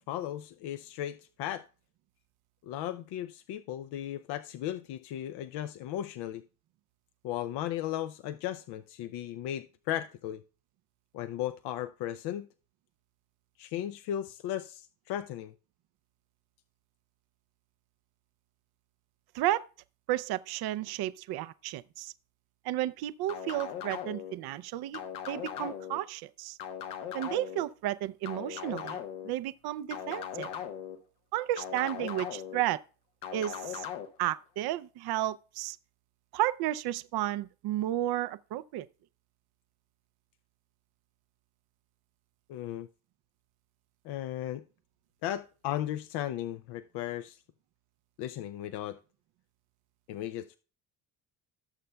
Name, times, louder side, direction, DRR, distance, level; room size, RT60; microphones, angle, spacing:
voice 1, 0.1-1.6 2.6-6.4 7.2-10.4 11.1-12.5 13.6-15.5 42.5-42.9 44.0-44.6 45.2-47.4 48.2-49.0 50.1-50.6, left 12 dB, 70° left, 0.6 m, -36 dB
voice 2, 20.1-22.1 22.6-26.6 27.1-29.0 29.2-30.5 31.3-32.8 33.3-33.8 34.2-35.8 36.3-38.9, right 14 dB, 65° right, 0.6 m, -32 dB
sound 1, 23.3-24.3 24.9-26.0 26.6-27.6 28.2-29.3 29.9-31.0 31.6-32.6 33.2-34.1, left 9 dB, 85° left, 1.1 m, -39 dB
17.0 x 6.7 x 2.3 m
supercardioid pair, 70°, 42 cm